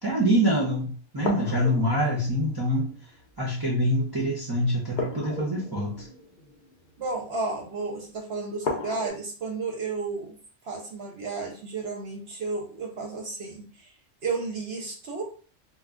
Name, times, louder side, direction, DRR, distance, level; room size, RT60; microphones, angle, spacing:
voice 1, 0.0-2.9 3.4-6.1, equal, 30° right, -5 dB, 0.4 m, -25 dB
sound 1, 1.2-3.4 4.9-7.2 8.6-9.1, left 3 dB, 50° left, 0.6 m, -35 dB
voice 2, 7.0-10.4 10.6-13.9 14.2-15.2, right 3 dB, 60° right, 1 dB, 0.8 m, -32 dB
2.3 x 2.2 x 3.6 m, 0.40 s
omnidirectional pair, 1.3 m